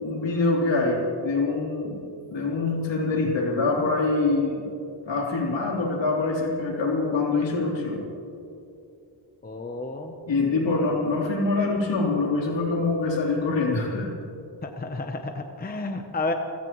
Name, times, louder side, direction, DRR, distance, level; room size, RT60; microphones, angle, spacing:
voice 1, 0.0-2.0 2.3-4.7 5.1-8.0 10.3-14.1, left 3 dB, 70° left, -2 dB, 3.6 m, -24 dB
voice 2, 9.4-10.1 14.6-16.3, left 2 dB, 20° left, 5 dB, 0.7 m, -31 dB
27.5 x 17.0 x 3.1 m, 2.8 s
wide cardioid pair, 180°, 46 cm